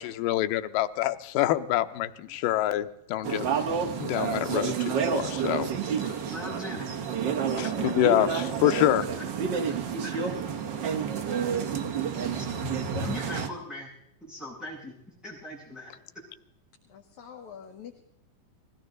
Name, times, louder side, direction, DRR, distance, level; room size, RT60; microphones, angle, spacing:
voice 1, 0.0-3.5 4.0-5.7 7.6-9.1, left 14 dB, 85° left, 2.4 m, -26 dB
sound 1, 3.2-13.5, right 6 dB, 65° right, 1.1 m, -29 dB
voice 2, 6.2-6.9 7.8-7.9 8.6-8.8 10.0-10.4 11.1-11.5 12.3-13.9 14.2-14.9 15.2-15.9, left 1 dB, ahead, 7.5 m, -41 dB
voice 3, 16.9-18.0, left 8 dB, 65° left, 2.6 m, -45 dB
21.0 x 16.5 x 3.9 m
omnidirectional pair, 3.8 m